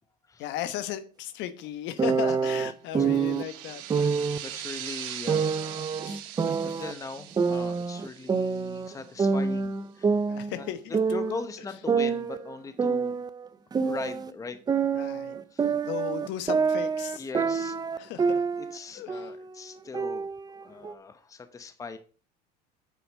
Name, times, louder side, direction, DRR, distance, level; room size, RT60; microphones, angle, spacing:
voice 1, 0.4-4.1 6.0-6.2 10.3-11.0 15.0-15.3 15.8-17.2 18.0-18.4 18.9-19.3, left 12 dB, 60° left, 1.3 m, -36 dB
sound 1, 2.0-3.4 3.9-4.4 5.3-6.9 7.4-8.9 9.2-11.5 11.9-14.3 14.7-18.8 19.1-19.5 19.9-20.9, right 5 dB, 20° right, 0.6 m, -27 dB
sound 2, 3.0-9.3, right 12 dB, 70° right, 1.1 m, -41 dB
voice 2, 4.4-6.1 6.4-10.2 10.5-10.7 11.1-13.2 13.8-14.6 14.9-15.0 15.5-15.7 17.2-17.8 18.1-20.3 20.6-22.0, left 4 dB, 15° left, 0.9 m, -40 dB
8.1 x 5.0 x 6.2 m
supercardioid pair, 105°, 21 cm